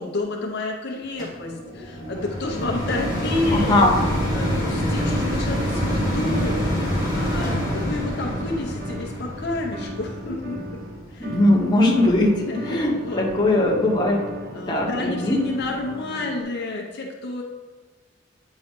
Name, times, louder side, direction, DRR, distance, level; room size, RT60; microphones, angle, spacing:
voice 1, 0.0-3.8 4.3-10.8 11.1-11.5 12.4-13.2 14.5-17.4, left 2 dB, 60° left, 0 dB, 0.7 m, -30 dB
sound 1, 1.2-12.5 13.1-13.2, equal, 20° right, 1.7 m, -26 dB
voice 2, 3.5-4.0 11.2-14.3 14.7-15.4, left 1 dB, 20° left, -2 dB, 1.1 m, -20 dB
sound 2, 4.7-16.4, equal, 55° right, 1.0 m, -37 dB
8.8 x 4.4 x 3.6 m, 1.4 s
head